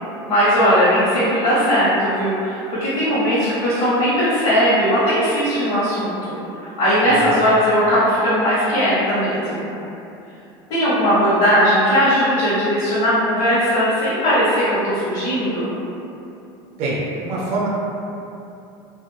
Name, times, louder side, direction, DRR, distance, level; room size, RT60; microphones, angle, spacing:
voice 1, 0.3-9.7 10.7-15.7, equal, 45° left, -12 dB, 1.0 m, -18 dB
voice 2, 16.8-17.7, right 2 dB, 60° right, -5 dB, 0.8 m, -25 dB
2.5 x 2.1 x 2.7 m, 2.8 s
supercardioid pair, 115°, 13 cm